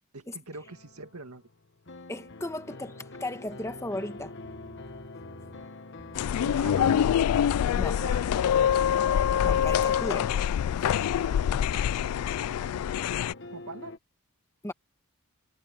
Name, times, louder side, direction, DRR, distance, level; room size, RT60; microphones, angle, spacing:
voice 1, 0.1-1.5 6.4-7.0 8.0-8.3 8.7-8.9 11.2-11.9 13.5-13.9, right 3 dB, 80° right, 2.1 m, -43 dB
sound 1, 0.6-14.0, left 2 dB, 55° left, 1.2 m, -44 dB
voice 2, 2.1-4.3 7.7-8.0 9.4-10.3 14.6-14.7, left 1 dB, 15° left, 1.3 m, -35 dB
sound 2, 4.2-5.7 6.0-6.4 6.7-7.2 7.4-9.4 9.7-10.4, equal, 40° right, 7.2 m, -53 dB
sound 3, 6.2-13.3, left 9 dB, 85° left, 0.3 m, -25 dB
head